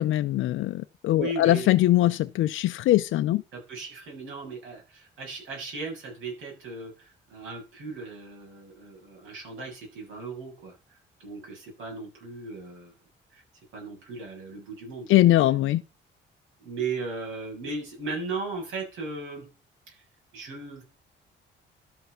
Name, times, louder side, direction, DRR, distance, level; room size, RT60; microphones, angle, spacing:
voice 1, 0.0-3.4 15.1-15.8, left 14 dB, 80° left, 0.6 m, -22 dB
voice 2, 1.1-1.7 3.5-12.9 13.3-13.4 13.7-15.5 16.6-19.5 19.9-20.0 20.3-20.8, right 3 dB, 80° right, 7.4 m, -37 dB
12.5 x 5.6 x 5.8 m
cardioid pair, 90°, 20 cm